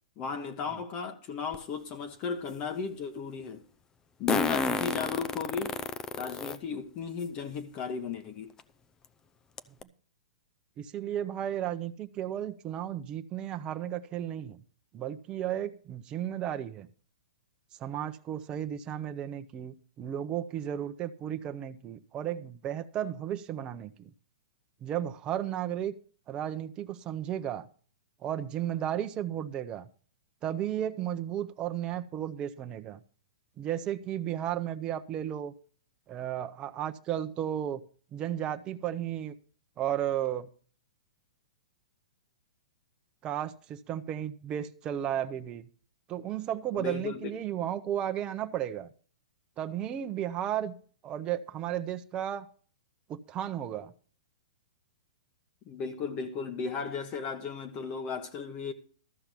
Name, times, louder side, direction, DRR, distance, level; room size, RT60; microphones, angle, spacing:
voice 1, 0.2-3.6 4.2-5.8 6.2-8.5 46.8-47.3 55.7-58.7, left 5 dB, 35° left, 1.2 m, -35 dB
Fart, 1.5-1.6 4.3-6.6 7.2-7.3 8.6-8.7 9.0-9.1 9.6-9.8, left 4 dB, 20° left, 0.7 m, -30 dB
voice 2, 10.8-14.6 14.9-16.9 17.8-24.1 24.8-26.0 26.3-27.7 28.2-29.9 30.4-33.0 33.6-35.5 36.1-37.8 38.1-39.3 39.8-40.5 43.2-45.7 46.1-48.9 49.6-50.7 51.0-52.5 53.1-53.9, right 11 dB, 25° right, 0.8 m, -34 dB
13.5 x 5.8 x 6.9 m
hypercardioid pair, 130°, 4 cm